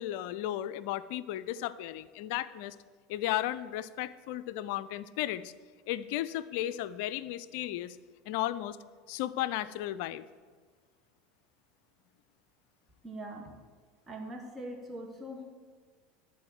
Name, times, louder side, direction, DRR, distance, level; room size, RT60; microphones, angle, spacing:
voice 1, 0.0-2.8 3.1-5.5 5.9-8.0 8.3-8.8 9.1-10.2, left 13 dB, 60° left, 15 dB, 0.4 m, -34 dB
voice 2, 13.0-13.5 14.1-15.5, right 1 dB, 20° right, 2 dB, 2.0 m, -42 dB
11.5 x 4.3 x 7.5 m, 1.5 s
hypercardioid pair, 75°, 0 cm